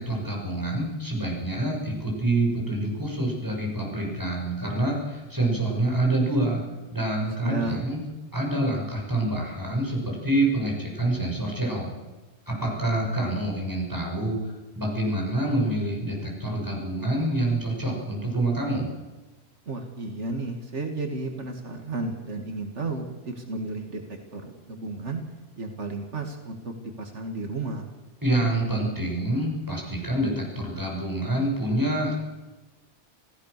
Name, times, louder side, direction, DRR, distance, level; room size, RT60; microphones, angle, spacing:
voice 1, 0.0-6.6 6.9-8.0 8.3-11.9 12.5-18.9 28.2-32.1, right 1 dB, 15° right, -2 dB, 6.4 m, -27 dB
voice 2, 7.4-7.8 19.7-25.2 25.6-27.9, right 2 dB, 80° right, 4 dB, 2.4 m, -33 dB
27.5 x 16.0 x 6.7 m, 1.2 s
omnidirectional pair, 1.2 m